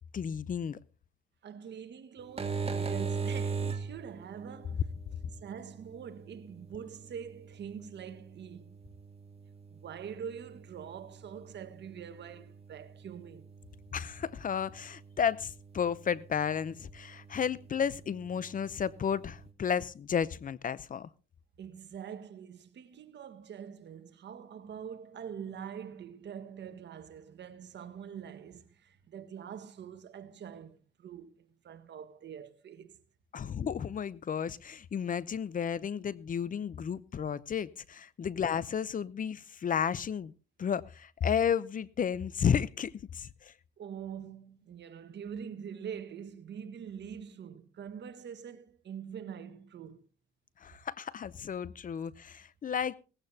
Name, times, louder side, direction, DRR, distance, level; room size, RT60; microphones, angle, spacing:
voice 1, 0.1-0.8 13.9-21.1 33.3-40.3 40.6-43.5 50.6-53.0, left 7 dB, 45° left, 0.7 m, -32 dB
voice 2, 1.4-4.9 5.3-8.8 9.7-13.5 21.6-33.0 43.8-50.0, right 8 dB, 60° right, 1.6 m, -44 dB
sound 1, 2.2-19.5, right 5 dB, 30° right, 2.1 m, -42 dB
18.0 x 15.5 x 2.8 m
cardioid pair, 90°, 20 cm